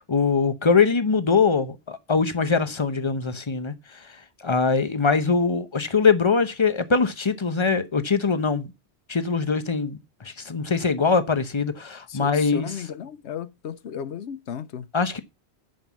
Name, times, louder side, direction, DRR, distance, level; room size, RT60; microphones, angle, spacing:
voice 1, 0.0-4.2 4.4-8.7 9.1-12.7 14.9-15.2, left 5 dB, 30° left, 0.9 m, -22 dB
voice 2, 12.1-14.9, left 8 dB, 85° left, 1.0 m, -35 dB
7.5 x 5.4 x 7.3 m
omnidirectional pair, 1.1 m